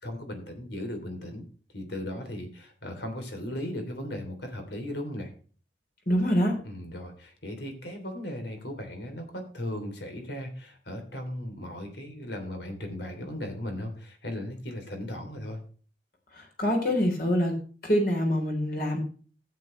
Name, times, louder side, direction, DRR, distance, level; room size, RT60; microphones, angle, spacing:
voice 1, 0.0-1.4 1.7-5.3 6.6-15.6, left 1 dB, 75° left, 5 dB, 3.3 m, -37 dB
voice 2, 6.1-6.5 16.3-17.5 17.8-19.0, equal, 55° left, 1 dB, 3.7 m, -25 dB
15.0 x 8.4 x 3.3 m, 0.40 s
head